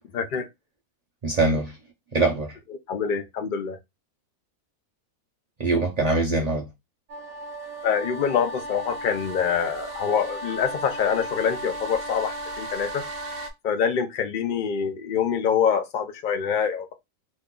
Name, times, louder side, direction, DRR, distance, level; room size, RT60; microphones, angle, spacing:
voice 1, 0.1-0.5 2.9-3.8 7.8-13.0 13.6-16.9, left 7 dB, 75° left, 0.4 m, -25 dB
voice 2, 1.2-1.8 2.1-2.6 5.6-6.7, right 2 dB, 50° right, 0.5 m, -23 dB
sound 1, 7.1-13.5, right 1 dB, 65° right, 1.0 m, -35 dB
3.0 x 2.3 x 3.6 m
omnidirectional pair, 1.6 m